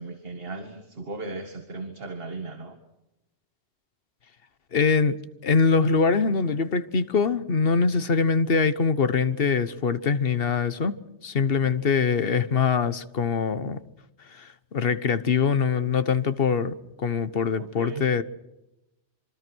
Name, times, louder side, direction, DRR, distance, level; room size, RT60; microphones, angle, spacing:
voice 1, 0.0-2.8 11.6-11.8 17.6-18.0, right 3 dB, 55° right, 2.1 m, -37 dB
voice 2, 4.7-13.8 14.3-18.2, left 5 dB, 55° left, 1.3 m, -23 dB
27.5 x 24.5 x 6.3 m
omnidirectional pair, 1.2 m